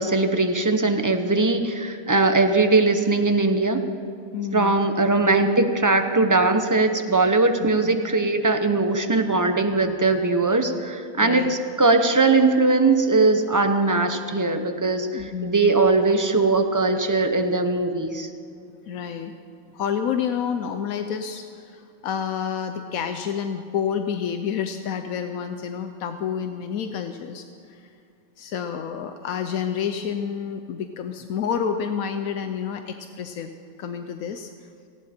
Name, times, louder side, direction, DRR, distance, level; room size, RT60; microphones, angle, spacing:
voice 1, 0.0-3.8 4.5-18.3, right 3 dB, 15° right, 6 dB, 0.7 m, -20 dB
voice 2, 4.3-4.8 5.2-5.4 7.6-8.0 11.2-11.5 15.1-15.7 18.9-19.3 19.7-27.9 28.4-33.5 33.8-34.5, left 7 dB, 85° left, 7 dB, 1.1 m, -29 dB
18.0 x 16.0 x 4.4 m, 2.5 s
omnidirectional pair, 1.4 m